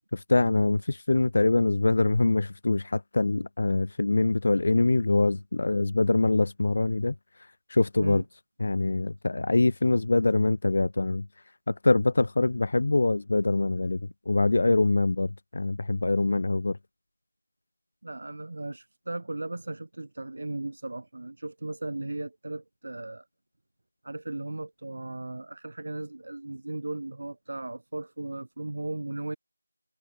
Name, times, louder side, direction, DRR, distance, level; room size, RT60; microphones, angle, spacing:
voice 1, 0.1-7.1 7.7-8.2 8.6-11.3 11.7-14.0 14.3-16.8, left 2 dB, 30° left, 1.8 m, -24 dB
voice 2, 18.0-23.2 24.0-29.4, right 2 dB, 35° right, 7.3 m, -36 dB
figure-of-eight pair, 175°, 0 cm